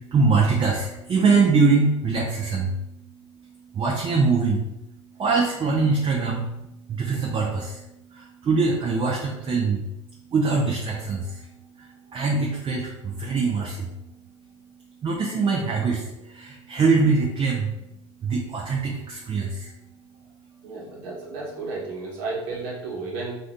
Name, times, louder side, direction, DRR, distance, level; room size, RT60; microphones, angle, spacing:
voice 1, 0.0-2.8 3.7-4.6 5.2-6.5 6.9-7.8 8.1-9.8 10.3-11.4 11.8-11.9 12.1-13.9 15.0-16.0 16.3-17.7 18.2-19.7, right 4 dB, 30° right, -2 dB, 0.6 m, -23 dB
voice 2, 20.6-23.4, right 3 dB, 60° right, -4 dB, 1.2 m, -32 dB
2.6 x 2.5 x 3.5 m, 0.89 s
hypercardioid pair, 75°, 15 cm